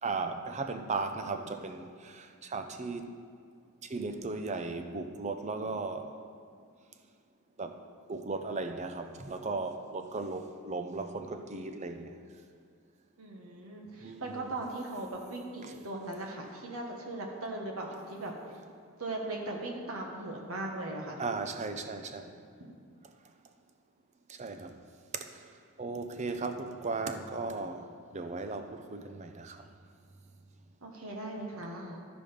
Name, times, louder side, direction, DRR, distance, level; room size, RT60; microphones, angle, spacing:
voice 1, 0.0-3.2 3.8-6.2 7.6-7.8 8.1-12.2 14.0-14.5 15.6-15.7 21.2-22.4 24.3-24.8 25.1-25.5 25.8-29.7, right 3 dB, 30° right, 0.5 m, -36 dB
voice 2, 13.2-18.3 19.0-21.2 30.8-32.0, right 2 dB, 70° right, 1.2 m, -38 dB
13.0 x 5.0 x 5.2 m
head